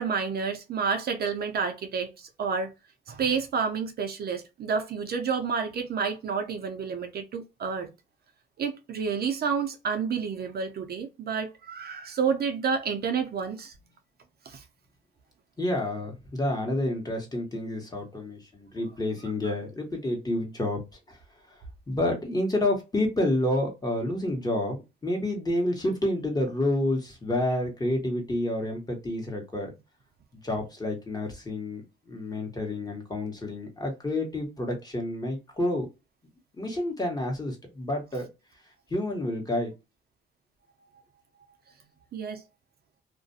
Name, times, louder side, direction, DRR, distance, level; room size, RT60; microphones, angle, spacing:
voice 1, 0.0-2.7 3.1-7.9 8.6-13.7 14.5-14.6 42.1-42.4, right 6 dB, 50° right, 0.5 m, -29 dB
voice 2, 15.6-20.8 21.1-21.2 21.5-21.6 21.9-29.7 30.4-35.9 36.6-38.3 38.9-39.7, left 1 dB, 20° left, 1.1 m, -29 dB
2.4 x 2.1 x 2.5 m
cardioid pair, 90°, 20 cm